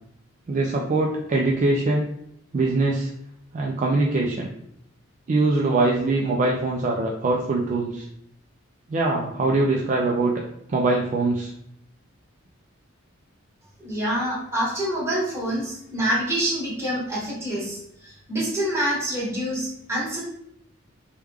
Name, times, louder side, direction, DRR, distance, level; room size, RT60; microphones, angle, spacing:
voice 1, 0.5-2.1 2.5-3.1 3.5-4.5 5.3-8.1 8.9-10.4 10.7-11.5, right 2 dB, 40° right, -1 dB, 0.3 m, -22 dB
voice 2, 13.8-20.2, right 1 dB, 15° right, -7 dB, 1.3 m, -26 dB
3.4 x 2.3 x 3.3 m, 0.77 s
head